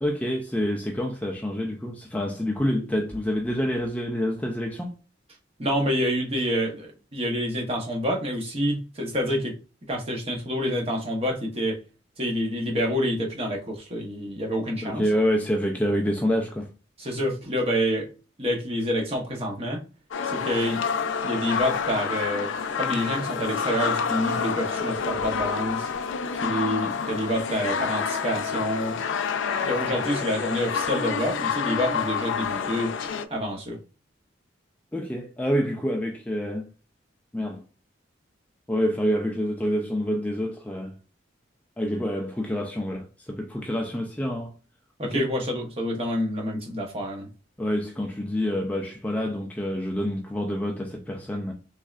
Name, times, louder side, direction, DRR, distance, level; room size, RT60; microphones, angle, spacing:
voice 1, 0.0-4.9 14.8-16.7 34.9-36.7 37.3-37.6 38.7-41.0 41.8-44.5 45.1-45.3 47.6-51.5, equal, 10° left, 0.4 m, -27 dB
voice 2, 5.6-9.5 9.9-11.8 12.2-15.0 17.0-18.1 18.4-19.8 20.2-20.9 21.2-25.9 26.4-29.0 29.7-33.0 33.3-33.8 45.0-47.3, equal, 30° right, 0.9 m, -27 dB
sound 1, 20.1-33.2, left 6 dB, 85° left, 0.4 m, -28 dB
3.5 x 3.2 x 2.4 m
head